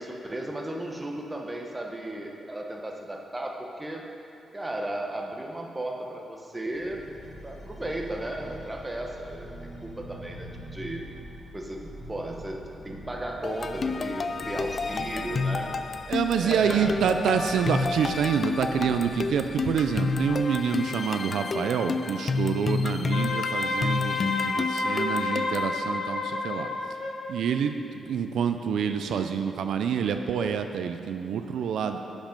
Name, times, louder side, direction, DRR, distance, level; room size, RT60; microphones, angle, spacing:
voice 1, 0.0-4.1 4.5-7.0 7.4-11.0 11.5-15.8 16.3-17.1, right 1 dB, 15° right, 1 dB, 0.9 m, -35 dB
sound 1, 6.7-20.4, equal, 15° left, 2.1 m, -44 dB
sound 2, 13.4-25.7, left 4 dB, 40° left, 0.3 m, -30 dB
voice 2, 16.1-26.7 27.3-32.0, right 7 dB, 85° right, 7 dB, 0.4 m, -27 dB
Wind instrument woodwind instrument, 23.1-27.3, left 3 dB, 55° left, 0.8 m, -30 dB
11.0 x 5.2 x 5.2 m, 2.7 s
wide cardioid pair, 135°, 0 cm